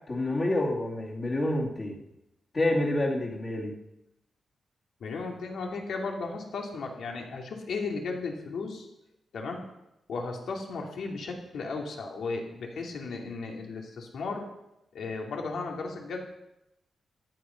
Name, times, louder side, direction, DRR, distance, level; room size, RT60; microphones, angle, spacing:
voice 1, 0.1-2.0 2.5-3.7, left 1 dB, 30° left, -3 dB, 2.6 m, -28 dB
voice 2, 5.0-8.9 9.3-9.7 10.1-14.5 14.9-16.2, left 4 dB, 70° left, 1 dB, 2.7 m, -35 dB
14.0 x 10.5 x 5.8 m, 0.87 s
wide cardioid pair, 160°, 0 cm